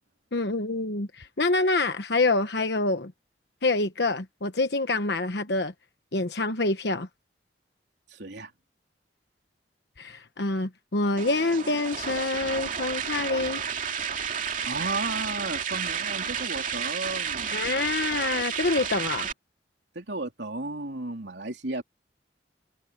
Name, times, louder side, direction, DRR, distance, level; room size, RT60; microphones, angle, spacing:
voice 1, 0.3-3.1 3.6-5.7 6.1-7.1 10.0-13.6 17.5-19.3, left 3 dB, 65° left, 1.2 m, -26 dB
voice 2, 8.1-8.5 14.6-17.7 20.0-21.8, right 2 dB, 75° right, 3.4 m, -34 dB
sound 1, 11.2-19.3, right 7 dB, 45° right, 2.5 m, -31 dB
head